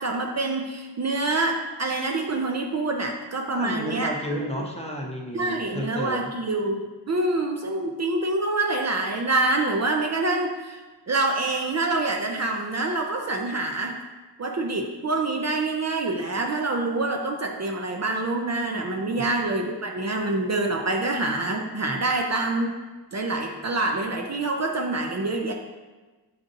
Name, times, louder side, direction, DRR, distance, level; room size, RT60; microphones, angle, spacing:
voice 1, 0.0-4.1 5.3-14.0 14.4-22.8 23.1-25.5, right 2 dB, 40° right, 2 dB, 0.4 m, -26 dB
voice 2, 3.5-6.3 19.1-19.3, equal, 15° left, -1 dB, 0.5 m, -32 dB
7.5 x 2.5 x 2.6 m, 1.2 s
wide cardioid pair, 85°, 46 cm